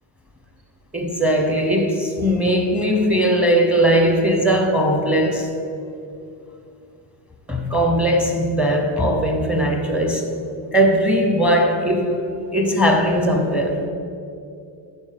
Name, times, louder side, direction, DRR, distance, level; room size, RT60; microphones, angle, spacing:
voice 1, 0.9-5.5 7.5-10.3 10.7-12.2 12.5-13.8, equal, 5° right, 4 dB, 1.0 m, -19 dB
10.5 x 4.6 x 5.3 m, 2.5 s
cardioid pair, 120°, 45 cm